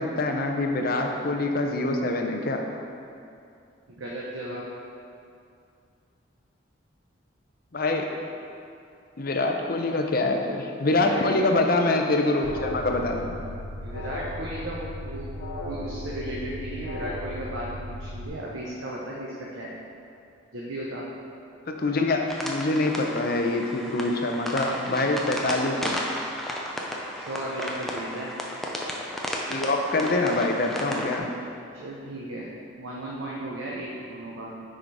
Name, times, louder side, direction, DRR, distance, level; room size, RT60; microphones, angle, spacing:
voice 1, 0.0-2.6 7.7-8.1 9.2-13.4 21.7-26.0 29.5-31.3, left 2 dB, 45° left, 2 dB, 0.6 m, -25 dB
voice 2, 3.9-4.7 10.9-11.4 13.8-15.3 15.6-19.7 20.5-21.0 27.2-28.3 31.7-34.6, right 1 dB, 90° right, -4 dB, 0.8 m, -35 dB
Alarm, 12.4-18.3, left 1 dB, 80° left, 1.3 m, -36 dB
sound 1, 22.3-31.2, equal, ahead, 0.5 m, -34 dB
6.3 x 5.0 x 4.7 m, 2.5 s
head